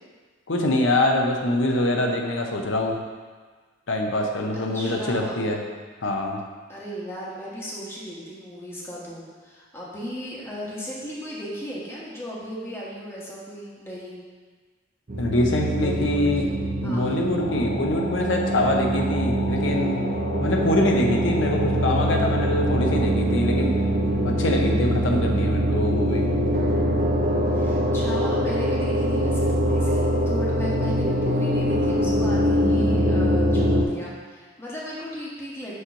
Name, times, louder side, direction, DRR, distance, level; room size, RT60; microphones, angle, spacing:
voice 1, 0.5-3.0 3.9-5.6 6.0-6.4 15.2-20.0 20.4-23.8 24.2-26.3, left 1 dB, 80° left, 1 dB, 0.8 m, -24 dB
voice 2, 4.5-5.5 6.7-14.2 15.7-16.5 16.8-17.1 27.5-35.7, equal, 15° left, -6 dB, 1.2 m, -36 dB
sound 1, 15.1-33.8, equal, 45° right, 0.6 m, -23 dB
sound 2, 17.4-23.1, left 4 dB, 40° left, 0.3 m, -37 dB
6.4 x 3.1 x 5.7 m, 1.5 s
head